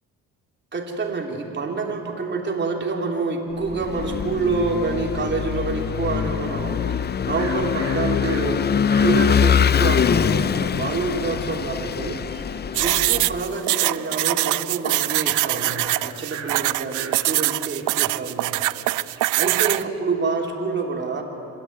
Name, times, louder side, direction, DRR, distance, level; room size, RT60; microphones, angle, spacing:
voice 1, 0.7-12.2 12.8-18.6 19.4-21.2, right 4 dB, 35° right, 2 dB, 3.2 m, -27 dB
Vehicle / Engine, 3.7-13.5, left 7 dB, 35° left, 0.5 m, -23 dB
sound 1, 5.2-9.4 9.9-10.0 10.1-13.3 13.6-14.5 14.7-14.8 15.3-20.0, right 6 dB, 55° right, 2.4 m, -41 dB
sound 2, 12.7-19.8, right 17 dB, 80° right, 0.5 m, -23 dB
26.5 x 13.0 x 9.4 m, 3.0 s
cardioid pair, 90°, 30 cm